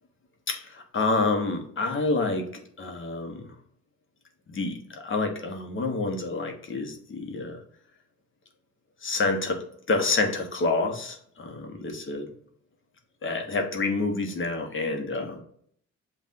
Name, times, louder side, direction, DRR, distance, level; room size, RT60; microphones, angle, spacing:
voice 1, 0.5-3.5 4.5-7.6 9.0-12.3 13.2-15.4, left 3 dB, 40° left, 3 dB, 1.1 m, -28 dB
7.3 x 2.6 x 2.7 m, 0.64 s
cardioid pair, 90°, 30 cm